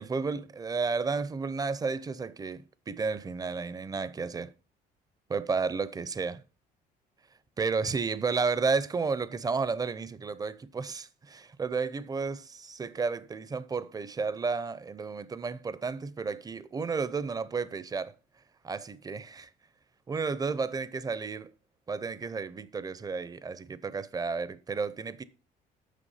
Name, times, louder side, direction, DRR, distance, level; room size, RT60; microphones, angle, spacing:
voice 1, 0.0-4.5 5.3-6.4 7.6-18.1 18.6-19.5 20.1-21.5 21.9-25.2, right 4 dB, 20° right, 0.6 m, -32 dB
8.3 x 6.2 x 5.6 m
cardioid pair, 110°, 17 cm